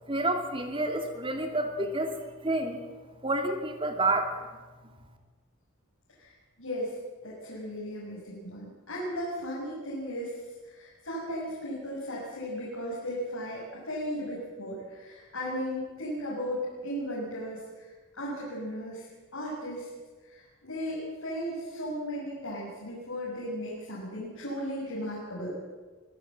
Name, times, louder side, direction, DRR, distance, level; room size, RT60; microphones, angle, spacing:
voice 1, 0.1-2.2 2.4-2.8 3.2-4.4, right 2 dB, 25° right, 5 dB, 2.5 m, -29 dB
voice 2, 6.6-6.9 7.2-10.4 10.6-17.9 18.2-19.1 19.3-19.9 20.3-25.5, equal, 90° left, -6 dB, 6.8 m, -36 dB
25.0 x 15.5 x 7.6 m, 1.3 s
head